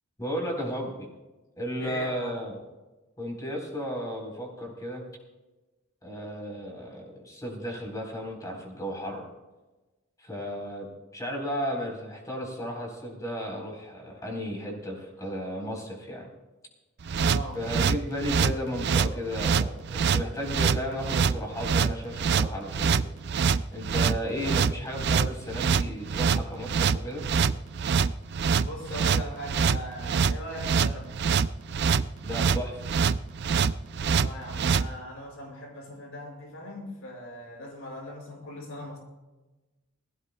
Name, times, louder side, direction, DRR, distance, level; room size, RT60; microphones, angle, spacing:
voice 1, 0.2-1.1 1.6-2.6 3.2-5.0 6.0-9.3 10.2-16.3 17.5-23.0 23.7-27.3 32.2-32.8, equal, 15° left, 0 dB, 3.9 m, -34 dB
voice 2, 1.8-2.3 17.2-17.6 28.6-31.1 34.1-39.0, left 1 dB, 80° left, 0 dB, 5.5 m, -39 dB
sound 1, 17.1-34.9, right 6 dB, 55° right, 0.4 m, -25 dB
21.0 x 16.0 x 2.3 m, 1.1 s
head